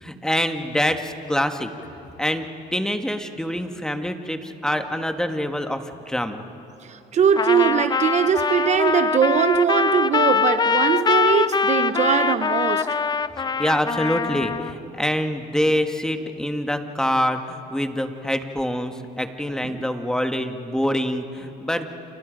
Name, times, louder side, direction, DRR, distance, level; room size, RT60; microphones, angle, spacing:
voice 1, 0.0-1.7 2.2-6.5 13.4-21.9, equal, 5° left, 1.4 m, -25 dB
voice 2, 6.8-12.9 15.7-15.8 19.6-19.8, right 8 dB, 45° right, 0.7 m, -21 dB
Trumpet, 7.4-14.7, left 5 dB, 25° left, 0.6 m, -23 dB
29.5 x 28.0 x 5.2 m
cardioid pair, 110°, 17 cm